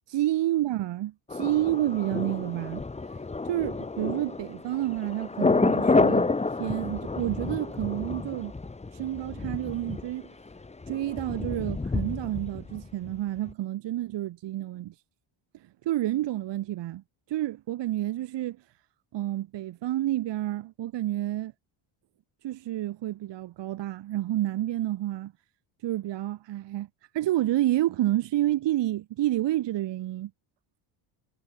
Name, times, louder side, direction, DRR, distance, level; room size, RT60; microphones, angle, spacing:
voice 1, 0.1-2.8 3.4-6.3 6.6-8.5 8.9-10.3 10.9-14.9 15.9-17.0 17.3-18.6 19.1-21.5 22.4-25.3 25.8-26.9 27.1-30.3, right 14 dB, 60° right, 1.7 m, -29 dB
Thunder, 1.3-13.2 13.5-13.6, left 3 dB, 15° left, 1.6 m, -29 dB
cardioid pair, 120°, 49 cm